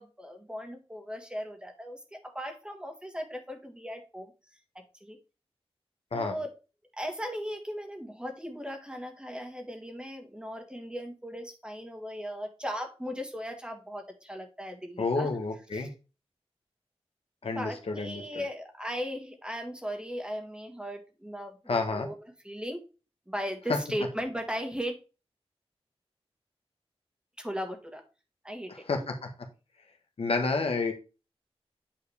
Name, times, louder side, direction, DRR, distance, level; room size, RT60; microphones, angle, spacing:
voice 1, 0.0-4.3 5.0-5.2 6.1-6.5 6.9-15.3 15.7-15.9 17.4-22.1 22.4-22.8 23.3-25.0 27.4-28.0 28.4-28.8, equal, 10° right, 4 dB, 1.7 m, -37 dB
voice 2, 15.0-15.9 17.4-18.2 21.7-22.1 28.9-29.3 30.2-30.9, left 3 dB, 65° left, 4 dB, 1.3 m, -29 dB
9.1 x 4.9 x 3.4 m, 0.31 s
wide cardioid pair, 115°, 11 cm